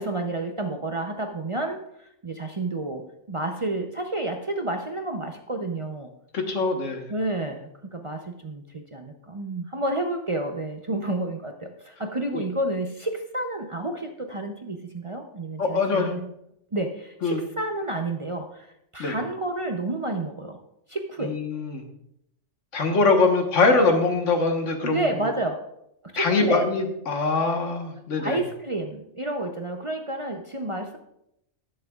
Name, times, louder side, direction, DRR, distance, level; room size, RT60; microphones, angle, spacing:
voice 1, 0.0-6.1 7.1-16.3 16.7-20.6 20.9-21.4 24.8-25.7 26.0-26.7 28.2-31.0, right 2 dB, 35° right, 4 dB, 0.6 m, -30 dB
voice 2, 6.3-7.1 12.3-12.4 15.6-16.2 17.2-17.4 19.0-19.1 21.2-21.8 22.7-25.3 26.2-28.4, left 3 dB, 80° left, 4 dB, 1.6 m, -23 dB
19.5 x 6.5 x 2.3 m, 0.78 s
omnidirectional pair, 1.2 m